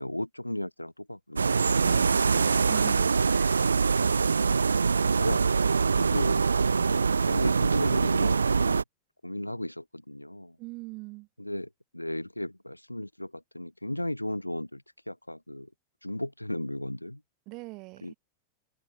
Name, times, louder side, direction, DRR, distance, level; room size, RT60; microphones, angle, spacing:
voice 1, 0.0-1.7 3.7-4.8 5.0-5.4 6.0-8.8 9.2-10.6 11.4-15.7 16.0-17.2 18.0-18.1, left 1 dB, 85° left, 3.8 m, -35 dB
sound 1, 1.4-8.8, right 5 dB, 75° right, 0.5 m, -24 dB
voice 2, 1.8-3.6 10.6-11.3 17.5-18.2, right 25 dB, 40° right, 7.0 m, -42 dB
open air
figure-of-eight pair, 90°, 0 cm